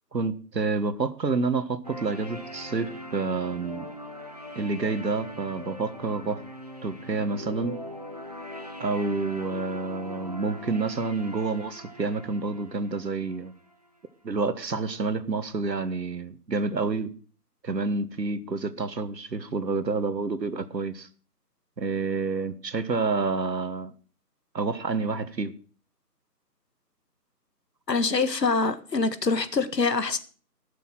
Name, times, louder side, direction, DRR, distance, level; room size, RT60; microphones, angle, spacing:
voice 1, 0.1-3.8 4.5-6.4 6.8-7.8 8.8-13.5 14.2-17.1 17.6-21.1 21.8-23.9 24.5-25.5, right 4 dB, 90° right, 1.7 m, -28 dB
sound 1, 1.8-13.9, left 1 dB, 25° right, 0.7 m, -41 dB
voice 2, 27.9-30.2, left 4 dB, 80° left, 1.8 m, -25 dB
16.5 x 7.0 x 6.3 m
figure-of-eight pair, 165°, 49 cm